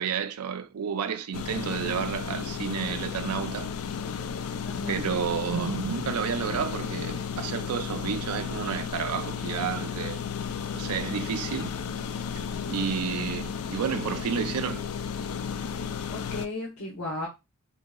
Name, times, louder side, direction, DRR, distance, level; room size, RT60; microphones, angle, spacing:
voice 1, 0.0-3.7 4.9-10.2 10.7-11.7 12.7-14.8, right 7 dB, 85° right, 0.4 m, -31 dB
sound 1, 1.3-16.5, left 6 dB, 75° left, 0.3 m, -33 dB
voice 2, 4.6-5.0 16.1-17.3, left 2 dB, 90° left, 0.9 m, -35 dB
3.9 x 2.7 x 2.2 m
head